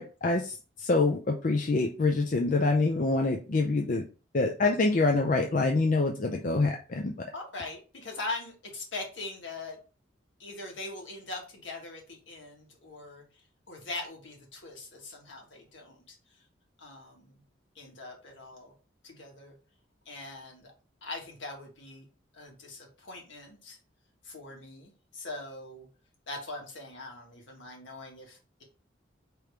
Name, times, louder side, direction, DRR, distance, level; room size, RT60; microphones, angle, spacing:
voice 1, 0.0-4.0 4.3-7.1, left 3 dB, 40° left, 3 dB, 0.4 m, -26 dB
voice 2, 7.3-9.8 10.4-13.2 13.7-16.2 16.8-17.4 17.7-18.7 19.0-19.5 20.0-20.7 21.0-22.1 22.3-23.8 24.2-25.9 26.3-28.6, left 2 dB, 70° left, 1 dB, 1.5 m, -41 dB
5.0 x 3.1 x 3.3 m, 0.34 s
head